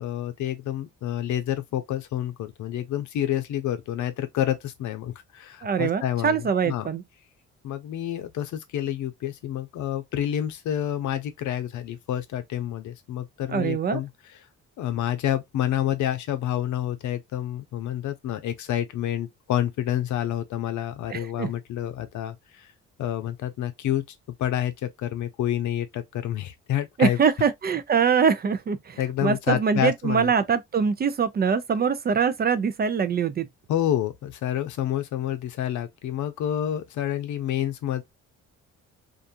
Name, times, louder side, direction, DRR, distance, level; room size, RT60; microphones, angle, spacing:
voice 1, 0.0-6.9 7.6-14.1 14.8-22.7 23.0-24.0 24.4-27.2 29.0-30.3 33.7-38.0, left 11 dB, 75° left, 0.7 m, -28 dB
voice 2, 5.6-7.0 13.5-14.0 21.1-21.5 27.0-33.4, right 6 dB, 35° right, 0.4 m, -23 dB
2.6 x 2.3 x 2.6 m
cardioid pair, 90°, 30 cm